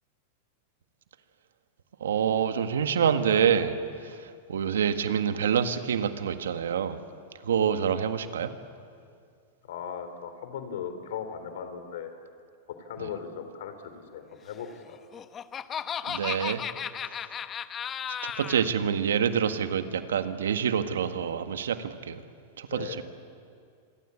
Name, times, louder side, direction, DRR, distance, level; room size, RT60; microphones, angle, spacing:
voice 1, 2.0-3.8 4.0-7.0 7.4-8.5 13.0-13.1 16.1-16.6 18.2-22.2 22.6-23.0, right 8 dB, 80° right, 9 dB, 1.7 m, -27 dB
voice 2, 9.6-12.1 12.8-15.0 22.7-23.0, left 7 dB, 70° left, 8 dB, 3.6 m, -38 dB
Laughter, 14.9-18.7, left 8 dB, 25° left, 1.0 m, -35 dB
28.0 x 22.5 x 8.5 m, 2.3 s
hypercardioid pair, 110°, 0 cm